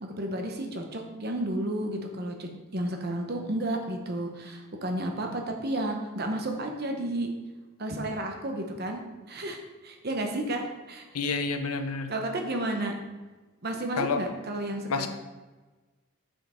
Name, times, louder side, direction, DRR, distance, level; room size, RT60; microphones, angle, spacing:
voice 1, 0.0-7.3 7.8-9.0 9.3-9.6 9.8-11.0 12.1-12.9 13.6-15.1, right 1 dB, 45° right, 3 dB, 0.9 m, -32 dB
voice 2, 11.1-12.1 14.0-14.2 14.9-15.1, left 4 dB, 90° left, 8 dB, 0.6 m, -29 dB
5.7 x 5.6 x 4.3 m, 1.2 s
head